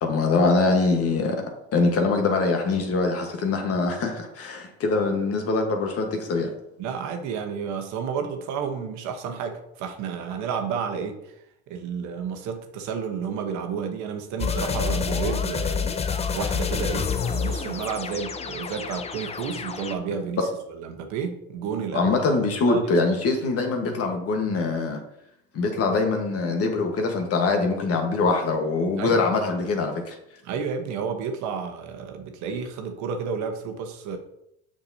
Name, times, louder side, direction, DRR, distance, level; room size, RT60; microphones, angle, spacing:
voice 1, 0.0-1.4 1.7-6.5 20.4-20.5 21.9-25.0 25.5-30.2, left 3 dB, 45° left, 4 dB, 1.4 m, -23 dB
voice 2, 6.8-11.3 11.7-15.9 16.3-22.2 22.7-22.9 29.0-29.2 30.4-34.2, right 6 dB, 55° right, 5 dB, 1.1 m, -31 dB
sound 1, 14.4-19.9, left 6 dB, 20° left, 0.5 m, -28 dB
6.7 x 6.1 x 2.8 m, 0.80 s
hypercardioid pair, 85°, 34 cm